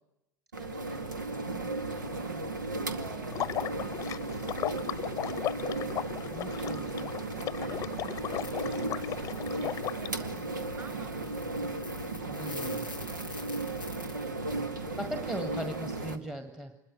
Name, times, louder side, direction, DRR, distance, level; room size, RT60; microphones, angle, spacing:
voice 1, 0.5-4.8 6.6-11.7 14.1-16.1, right 5 dB, 30° right, 8 dB, 5.4 m, -52 dB
sound 1, 0.5-16.2, right 2 dB, 75° right, 2.0 m, -35 dB
Water / Liquid, 3.3-10.1, left 12 dB, 30° left, 0.9 m, -36 dB
voice 2, 6.3-7.2 12.3-13.0 15.0-16.8, right 1 dB, 5° right, 10 dB, 1.6 m, -39 dB
sound 2, 8.4-8.5 8.8-14.2, left 2 dB, 90° right, 7.9 m, -47 dB
27.0 x 22.0 x 9.7 m, 0.93 s
figure-of-eight pair, 80°, 10 cm